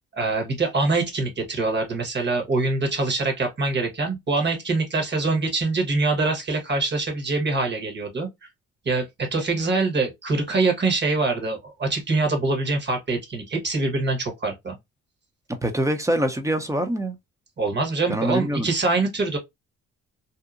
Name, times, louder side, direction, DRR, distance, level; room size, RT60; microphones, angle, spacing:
voice 1, 0.2-8.3 8.8-14.8 17.6-19.4, right 3 dB, 35° right, 1.2 m, -24 dB
voice 2, 15.5-17.2 18.1-18.7, right 1 dB, 10° right, 0.6 m, -24 dB
2.8 x 2.1 x 2.4 m
cardioid pair, 90°, 30 cm